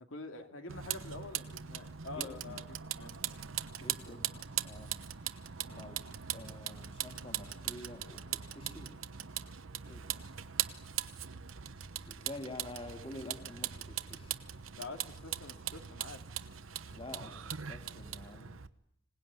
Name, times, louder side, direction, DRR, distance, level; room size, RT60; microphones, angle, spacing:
voice 1, 0.1-3.4 4.1-4.4 5.6-5.8 14.7-16.2, left 3 dB, 80° left, 6 dB, 2.5 m, -47 dB
Vehicle, 0.7-18.7, right 10 dB, 85° right, 1.0 m, -40 dB
voice 2, 2.2-2.6 3.8-4.2 4.6-4.9 5.8-6.0 6.3-8.9 9.9-10.2 12.1-14.4 16.9-18.5, left 1 dB, 25° left, 6 dB, 2.6 m, -48 dB
26.0 x 18.5 x 9.7 m, 0.76 s
head